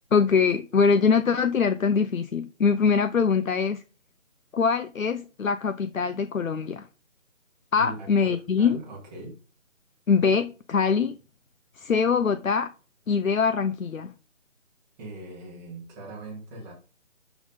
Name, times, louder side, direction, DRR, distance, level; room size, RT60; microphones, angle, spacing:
voice 1, 0.1-3.8 4.5-6.8 7.7-8.8 10.1-11.2 11.8-12.7 13.1-14.1, left 5 dB, 80° left, 0.9 m, -23 dB
voice 2, 7.7-8.3 8.6-9.3 15.0-16.7, right 1 dB, 5° right, 0.9 m, -40 dB
11.5 x 4.1 x 5.4 m
figure-of-eight pair, 160°, 40 cm